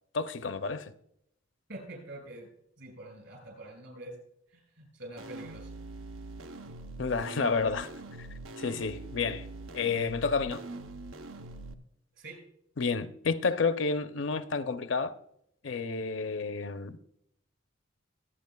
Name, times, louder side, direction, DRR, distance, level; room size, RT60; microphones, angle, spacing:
voice 1, 0.1-0.9 7.0-7.9 8.2-8.3 8.6-9.5 9.7-10.6 12.8-15.1 15.6-17.0, left 4 dB, 65° left, 0.6 m, -30 dB
voice 2, 1.7-2.5 2.8-4.1 4.5-5.7 6.4-6.6 12.1-12.4, right 1 dB, 65° right, 5.4 m, -45 dB
sound 1, 5.2-11.7, right 2 dB, 85° right, 0.7 m, -43 dB
22.5 x 8.9 x 2.3 m
head